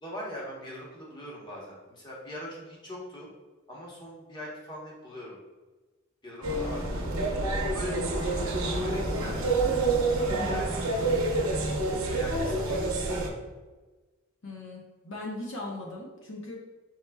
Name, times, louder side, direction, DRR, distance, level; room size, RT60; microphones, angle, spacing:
voice 1, 0.0-3.3 3.7-5.4 6.2-6.8 7.6-9.4 10.1-13.4, equal, 20° left, -4 dB, 1.0 m, -42 dB
sound 1, 6.4-13.3, right 2 dB, 65° right, 0.8 m, -28 dB
voice 2, 10.3-10.6 14.4-16.6, left 2 dB, 55° left, -2 dB, 0.7 m, -39 dB
4.7 x 4.3 x 2.2 m, 1.2 s
head